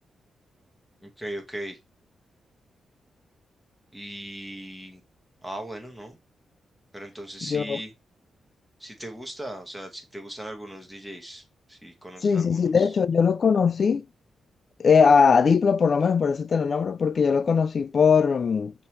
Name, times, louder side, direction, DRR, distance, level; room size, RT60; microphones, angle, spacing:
voice 1, 1.0-1.8 3.9-5.0 5.4-6.2 6.9-7.9 8.8-13.0, right 1 dB, 5° right, 1.4 m, -38 dB
voice 2, 7.5-7.8 12.2-14.1 14.8-18.7, left 6 dB, 55° left, 0.3 m, -20 dB
5.4 x 2.8 x 3.1 m
cardioid pair, 65°, 0 cm